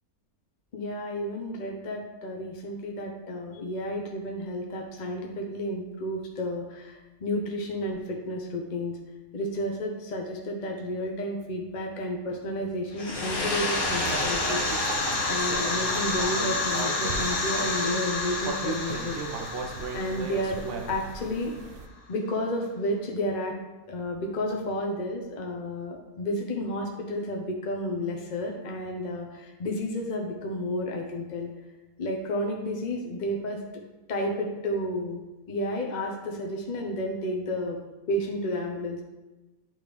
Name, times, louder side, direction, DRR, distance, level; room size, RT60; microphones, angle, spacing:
voice 1, 0.7-8.9 9.3-14.6 15.3-19.2 19.9-20.6 20.9-21.5 22.1-23.5 23.9-31.5 32.0-33.6 34.1-35.2 35.5-37.8 38.1-39.0, left 1 dB, 35° left, 0 dB, 0.7 m, -31 dB
sound 1, 12.9-21.5, left 3 dB, 60° left, 1.3 m, -29 dB
sound 2, 13.8-21.9, right 5 dB, 80° right, 1.2 m, -41 dB
Human voice, 14.1-18.0 18.4-21.1, right 3 dB, 65° right, 0.5 m, -36 dB
9.9 x 3.8 x 3.4 m, 1.1 s
omnidirectional pair, 1.8 m